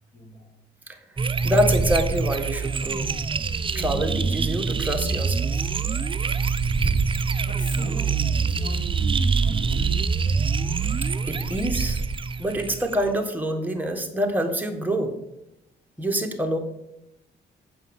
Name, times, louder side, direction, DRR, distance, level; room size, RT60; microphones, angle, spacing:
voice 1, 0.1-0.5 1.1-1.2 2.9-3.0 7.4-8.8 9.4-10.1 16.0-16.1, left 1 dB, 40° left, 2 dB, 2.5 m, -40 dB
sound 1, 1.2-13.1, right 5 dB, 25° right, 0.6 m, -25 dB
voice 2, 1.4-3.1 3.7-5.6 11.3-12.0 12.4-15.1 16.0-16.6, equal, 10° right, 3 dB, 1.7 m, -26 dB
8.4 x 5.7 x 7.2 m, 0.86 s
cardioid pair, 90°, 20 cm